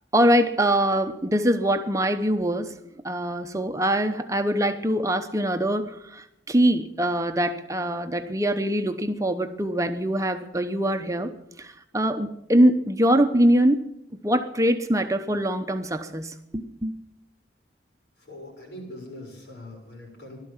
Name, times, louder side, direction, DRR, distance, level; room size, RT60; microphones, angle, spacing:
voice 1, 0.1-2.7 3.0-11.3 11.6-17.0, right 1 dB, 20° right, 7 dB, 0.8 m, -23 dB
voice 2, 18.3-20.4, left 1 dB, 80° left, -1 dB, 7.0 m, -42 dB
16.0 x 12.5 x 7.3 m, 0.84 s
head